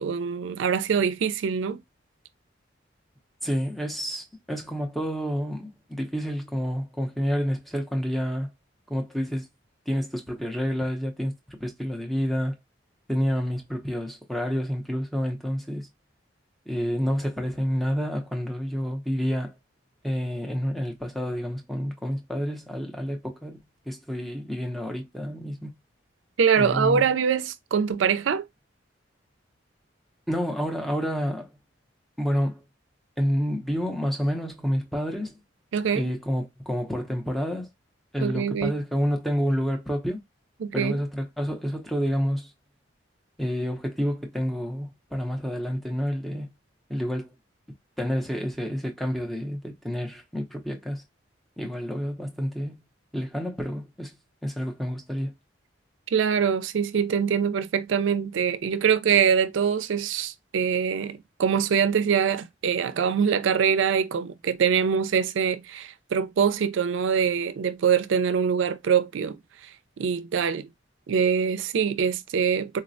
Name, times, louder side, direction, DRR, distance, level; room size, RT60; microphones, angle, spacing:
voice 1, 0.0-1.8 26.4-28.4 35.7-36.1 38.2-38.7 40.6-41.0 56.1-69.4 69.6-69.7 70.0-70.7 71.1-72.8, right 7 dB, 80° right, 0.4 m, -24 dB
voice 2, 3.4-8.5 8.9-9.5 9.9-12.6 13.1-15.9 16.7-19.5 20.0-23.6 23.9-25.8 26.6-27.0 30.3-31.5 32.2-32.6 33.2-35.4 35.9-37.7 38.1-40.2 40.7-42.5 43.4-46.5 46.9-47.3 48.0-51.0 51.6-52.7 53.1-54.2 54.4-55.3, equal, ahead, 0.5 m, -29 dB
4.0 x 2.0 x 2.5 m
head